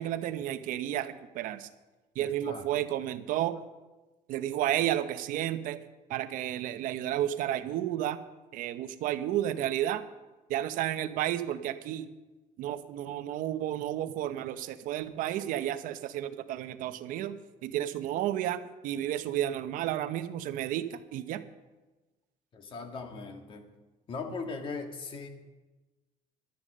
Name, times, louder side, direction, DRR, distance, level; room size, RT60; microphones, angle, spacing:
voice 1, 0.0-1.7 2.1-3.6 4.3-5.8 6.1-8.2 8.5-10.0 10.5-12.1 12.6-17.4 17.6-21.4, right 12 dB, 70° right, 11 dB, 0.9 m, -32 dB
voice 2, 2.2-2.9 22.5-23.6 24.1-25.3, left 4 dB, 35° left, 5 dB, 1.8 m, -39 dB
12.5 x 11.5 x 6.6 m, 1.2 s
cardioid pair, 165°, 15 cm